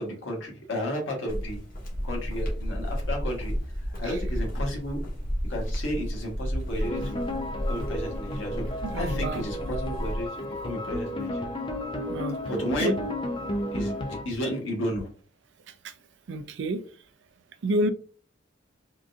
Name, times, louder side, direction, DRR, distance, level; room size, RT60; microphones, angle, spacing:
voice 1, 0.0-1.6 2.0-3.6 4.0-5.0 5.5-7.2 7.7-11.5 12.5-13.0 13.7-15.1, equal, 70° left, 1.3 m, -33 dB
sound 1, 1.3-10.3, equal, 45° left, 1.0 m, -32 dB
sound 2, 6.8-14.2, left 1 dB, 25° left, 0.4 m, -33 dB
voice 2, 8.8-9.5 12.1-12.4 12.8-12.9 16.3-16.8 17.6-17.9, right 1 dB, 60° right, 0.4 m, -28 dB
3.7 x 2.6 x 2.4 m
head